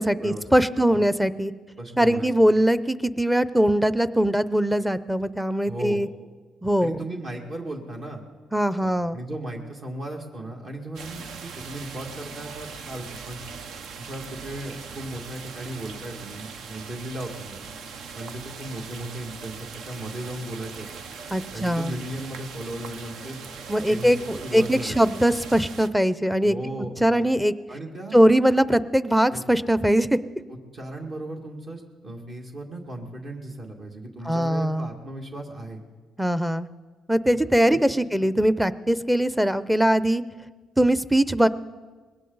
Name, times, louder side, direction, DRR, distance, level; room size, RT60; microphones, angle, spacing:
voice 1, 0.0-1.5 2.0-6.1 6.6-7.0 8.5-9.2 21.3-21.9 23.7-26.5 27.0-27.5 28.1-30.2 34.3-34.9 36.2-36.7 37.1-40.2 40.8-41.5, equal, 5° right, 14 dB, 0.6 m, -21 dB
voice 2, 0.8-1.1 1.8-2.3 5.6-6.1 6.8-8.2 8.8-13.4 14.0-17.6 18.1-21.0 21.5-23.4 23.9-25.1 26.4-27.3 27.7-28.2 29.3-29.4 30.5-35.8 37.7-37.8 38.0-38.1, right 1 dB, 55° right, 0 dB, 2.2 m, -36 dB
sound 1, 10.9-25.9, right 5 dB, 75° right, 0.8 m, -40 dB
20.5 x 17.0 x 4.0 m, 1.4 s
cardioid pair, 90°, 0 cm